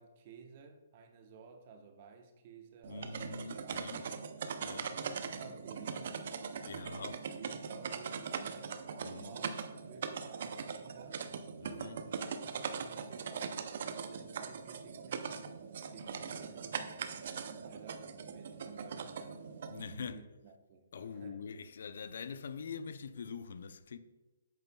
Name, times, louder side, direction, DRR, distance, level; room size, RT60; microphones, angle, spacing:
voice 1, 0.0-3.1 3.6-4.2 4.7-8.7 9.0-11.2 11.6-18.1 18.3-19.4 19.8-21.4, right 5 dB, 40° right, 1.0 m, -55 dB
sound 1, 2.8-19.8, right 6 dB, 60° right, 0.5 m, -41 dB
voice 2, 2.9-4.1 4.6-4.9 6.7-7.2 9.0-9.3 11.6-12.0 19.7-20.3 20.9-24.0, left 5 dB, 65° left, 0.5 m, -44 dB
8.3 x 6.6 x 2.3 m
hypercardioid pair, 145°, 0 cm